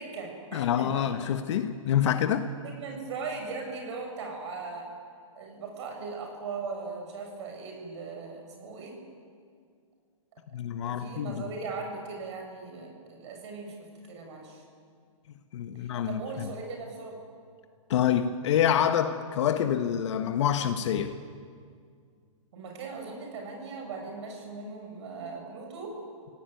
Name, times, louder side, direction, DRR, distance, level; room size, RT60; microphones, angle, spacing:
voice 1, 0.0-1.1 2.8-4.9 5.3-9.0 11.0-13.8 14.1-14.6 15.8-17.1 22.5-26.0, right 4 dB, 55° right, 2 dB, 7.5 m, -39 dB
voice 2, 0.5-2.5 10.5-11.4 15.5-16.5 17.9-21.2, left 9 dB, 60° left, 8 dB, 1.4 m, -27 dB
27.5 x 18.0 x 9.3 m, 2.1 s
hypercardioid pair, 140°, 17 cm